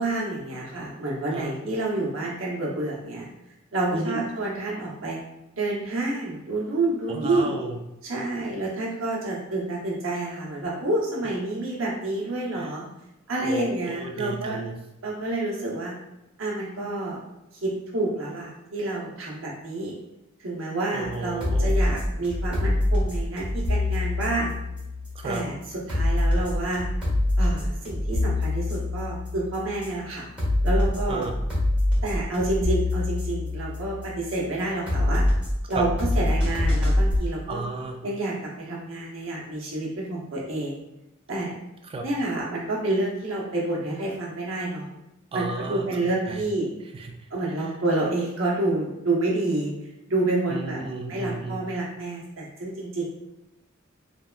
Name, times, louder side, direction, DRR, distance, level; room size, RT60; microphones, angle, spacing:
voice 1, 0.0-3.3 3.7-5.2 5.5-7.5 8.0-12.9 13.3-14.6 15.0-15.9 16.4-17.2 17.6-19.9 20.4-24.5 25.2-25.5 25.9-26.9 27.4-30.3 30.6-31.2 32.0-35.2 35.7-37.6 38.0-40.8 41.3-41.5 42.0-44.9 45.3-46.7 47.3-49.7 50.1-50.8 51.1-53.1, right 2 dB, 80° right, -4 dB, 0.9 m, -28 dB
voice 2, 7.1-7.8 12.6-12.7 13.4-14.7 20.9-21.7 25.2-25.4 31.1-31.3 35.7-35.8 37.5-38.0 41.9-42.0 45.3-45.9 46.3-46.4 46.9-47.1 50.5-51.6, right 3 dB, 30° right, 2 dB, 0.3 m, -32 dB
sound 1, 21.0-37.2, left 1 dB, 5° right, 1.0 m, -25 dB
3.3 x 2.2 x 2.4 m, 0.92 s
head